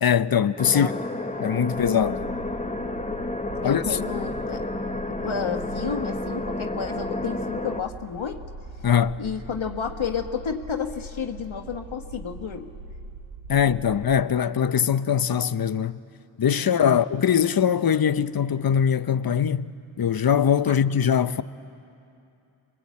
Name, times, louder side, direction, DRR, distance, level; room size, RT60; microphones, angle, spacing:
voice 1, 0.0-0.9 1.4-2.2 3.6-4.0 8.8-9.2 13.5-16.0 16.4-19.7 20.0-21.4, left 8 dB, 45° left, 0.7 m, -22 dB
sound 1, 0.6-7.8, left 2 dB, 15° left, 1.1 m, -31 dB
voice 2, 0.7-1.0 3.6-4.6 5.1-8.4 9.2-12.7 13.5-13.6 16.6-17.0 20.7-20.8, left 6 dB, 65° left, 1.4 m, -31 dB
sound 2, 1.7-14.2, right 2 dB, 90° right, 1.8 m, -41 dB
25.5 x 22.0 x 8.5 m
cardioid pair, 40°, 50 cm